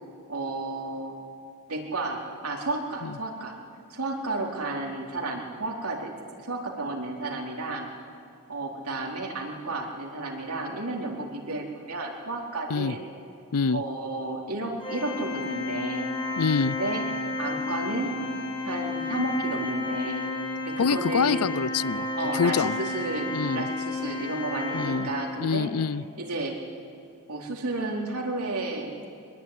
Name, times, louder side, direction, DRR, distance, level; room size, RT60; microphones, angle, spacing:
voice 1, 0.3-1.1 1.7-3.6 3.9-6.1 6.4-7.9 8.5-13.0 13.7-16.1 16.8-17.0 17.4-18.1 18.7-20.3 20.6-21.4 22.1-25.7 26.2-26.6 27.3-29.0, right 2 dB, 85° right, 0 dB, 4.3 m, -32 dB
voice 2, 13.5-13.8 16.4-16.8 20.8-22.7 23.3-23.7 24.7-25.1 25.4-26.0, left 5 dB, 85° left, 19 dB, 0.6 m, -26 dB
Organ, 14.8-25.5, left 3 dB, 25° left, 3.3 m, -32 dB
23.5 x 21.0 x 9.9 m, 2.4 s
head